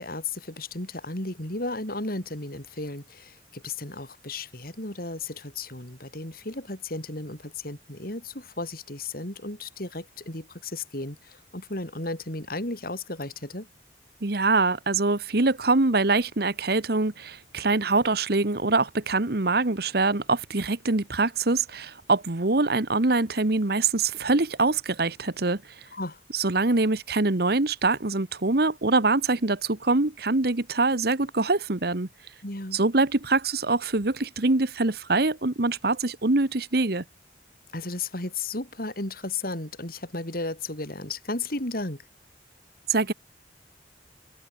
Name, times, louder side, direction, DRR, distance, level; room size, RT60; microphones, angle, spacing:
voice 1, 0.0-13.7 25.9-26.2 32.4-32.8 37.7-42.0, left 2 dB, 55° left, 5.1 m, -34 dB
voice 2, 14.2-25.6 26.3-32.1 32.7-37.0 42.9-43.1, right 3 dB, 60° right, 1.3 m, -24 dB
open air
head